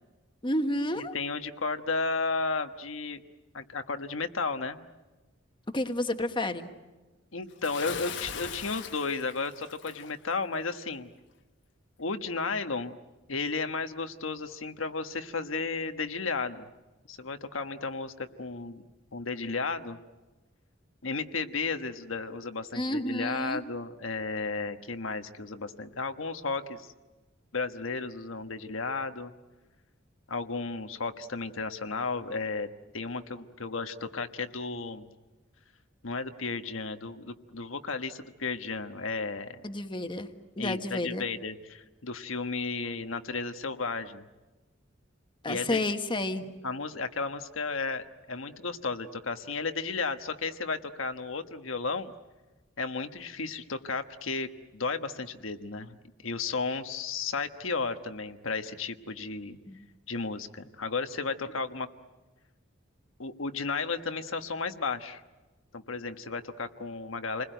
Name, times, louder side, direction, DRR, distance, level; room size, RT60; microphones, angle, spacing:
voice 1, 0.4-1.1 5.7-6.7 22.7-23.6 39.6-40.3 40.6-41.2 45.4-46.5 59.7-59.9, left 1 dB, 25° left, 7 dB, 1.4 m, -30 dB
voice 2, 1.0-3.2 3.5-4.8 7.3-11.1 12.0-13.0 13.3-16.7 17.1-18.9 19.1-20.0 21.0-26.9 27.5-29.3 30.3-32.7 32.9-35.1 36.0-39.6 40.6-44.2 45.5-45.9 46.6-52.1 52.8-56.0 56.2-59.6 60.1-61.9 63.2-65.2 65.7-67.4, left 4 dB, 80° left, 8 dB, 1.3 m, -33 dB
Bathtub (filling or washing) / Splash splatter, 7.6-10.1, left 7 dB, 60° left, 1.4 m, -40 dB
29.0 x 21.0 x 9.2 m, 1.2 s
head